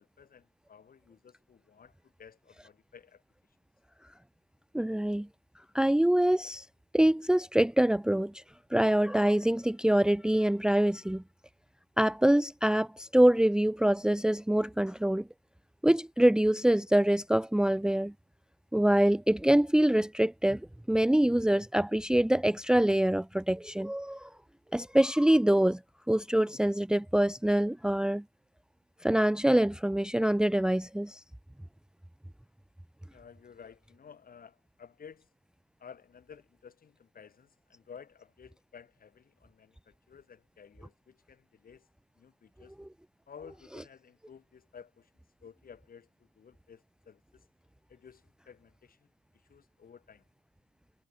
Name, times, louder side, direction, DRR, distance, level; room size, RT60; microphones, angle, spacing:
voice 1, 0.0-1.9 2.2-3.2 33.1-35.3 35.8-41.9 42.2-42.7 43.3-45.1 45.4-47.4 47.9-49.1 49.5-50.2, left 7 dB, 45° left, 4.4 m, -53 dB
voice 2, 4.7-5.3 5.7-6.6 6.9-8.4 8.7-11.2 12.0-15.2 15.8-18.1 18.7-20.6 20.9-24.3 24.7-25.8 26.1-28.2 29.0-31.2 42.8-42.9, right 1 dB, 5° right, 0.8 m, -25 dB
cardioid pair, 90°, 20 cm